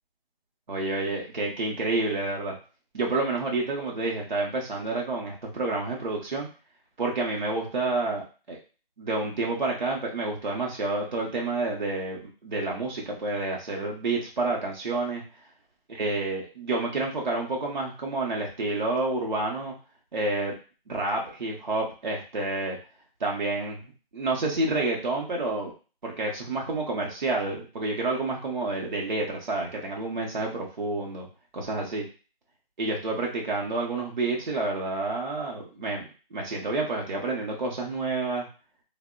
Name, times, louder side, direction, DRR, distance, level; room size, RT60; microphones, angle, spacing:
voice 1, 0.7-2.5 2.9-6.5 7.0-8.6 9.0-15.2 15.9-19.7 20.1-20.6 20.9-22.8 23.2-25.7 26.0-31.3 31.5-32.0 32.8-38.5, right 2 dB, 50° right, -1 dB, 0.7 m, -29 dB
3.4 x 2.0 x 2.3 m, 0.35 s
figure-of-eight pair, 175°, 30 cm